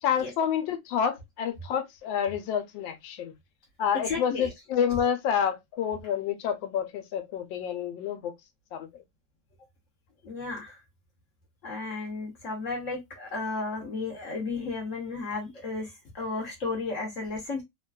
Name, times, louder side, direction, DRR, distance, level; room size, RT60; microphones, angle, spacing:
voice 1, 0.0-3.3 3.8-8.3 8.7-8.9, left 8 dB, 85° left, 1.3 m, -28 dB
voice 2, 4.1-4.5 10.2-10.8 11.6-15.9 16.1-17.6, left 3 dB, 55° left, 1.0 m, -33 dB
3.2 x 2.3 x 2.2 m
omnidirectional pair, 2.0 m